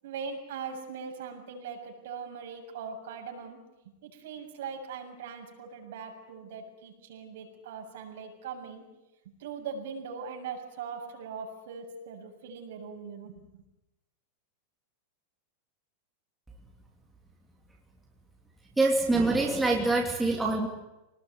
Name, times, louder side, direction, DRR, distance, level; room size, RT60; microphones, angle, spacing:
voice 1, 0.0-3.6 4.0-8.8 9.4-13.3, right 6 dB, 65° right, 3 dB, 7.1 m, -40 dB
voice 2, 18.8-20.7, right 2 dB, 5° right, -1 dB, 2.8 m, -25 dB
26.5 x 19.5 x 9.5 m, 0.96 s
supercardioid pair, 175°, 0 cm